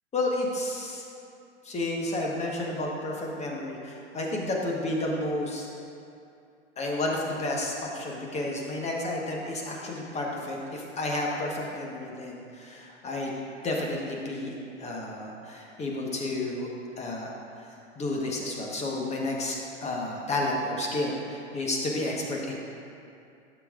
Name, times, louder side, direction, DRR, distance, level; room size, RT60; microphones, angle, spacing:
voice 1, 0.1-1.0 1.6-5.7 6.8-13.4 13.6-16.7 17.0-17.3 18.0-22.6, left 2 dB, 20° left, -1 dB, 1.2 m, -31 dB
11.5 x 7.0 x 2.5 m, 2.5 s
hypercardioid pair, 105°, 36 cm